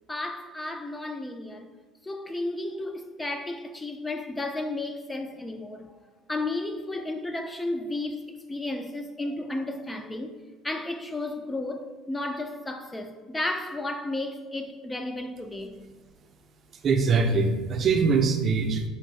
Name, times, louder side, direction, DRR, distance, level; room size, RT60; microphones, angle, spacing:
voice 1, 0.1-1.7 2.1-5.9 6.3-8.2 8.5-10.3 10.6-15.7, left 2 dB, 15° left, 0.4 m, -33 dB
voice 2, 16.8-18.8, right 4 dB, 45° right, 0.5 m, -23 dB
5.6 x 2.5 x 3.1 m
supercardioid pair, 95°, 0 cm